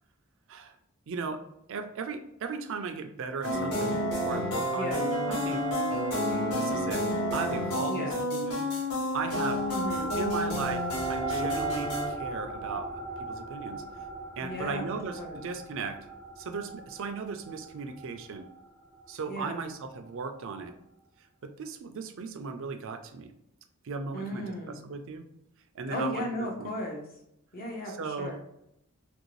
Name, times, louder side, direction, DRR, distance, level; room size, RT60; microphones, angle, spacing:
voice 1, 1.1-1.4 1.7-5.0 5.3-5.7 6.3-7.1 7.3-8.7 9.1-9.6 10.2-12.9 13.2-13.8 14.4-16.0 16.4-18.5 19.1-20.7 21.4-23.3 23.8-25.3 25.7-26.3 26.6-26.7 27.9-28.4, right 4 dB, 60° right, 6 dB, 0.4 m, -37 dB
sound 1, 3.4-12.1, equal, 90° left, 1.4 m, -30 dB
voice 2, 4.7-5.1 7.9-8.3 9.7-10.1 14.4-14.8 15.1-15.4 19.3-19.7 24.1-24.8 25.9-27.0 27.5-28.4, equal, 40° left, 0 dB, 0.8 m, -35 dB
sound 2, 9.2-20.0, right 2 dB, 5° left, 0.5 m, -39 dB
3.0 x 2.6 x 3.1 m, 0.78 s
head